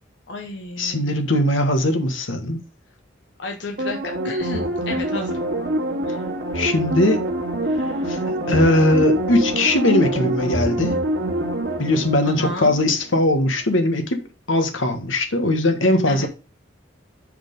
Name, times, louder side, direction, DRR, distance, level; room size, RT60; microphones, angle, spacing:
voice 1, 0.3-1.2 3.4-5.4 12.2-12.8 16.1-16.3, left 2 dB, 65° left, 0.9 m, -32 dB
voice 2, 0.8-2.6 6.5-7.2 7.8-11.0 11.8-14.2 14.5-16.3, left 1 dB, 90° left, 1.4 m, -20 dB
sound 1, 3.8-13.2 13.5-13.6, right 1 dB, 55° right, 1.9 m, -25 dB
6.1 x 4.9 x 5.2 m
head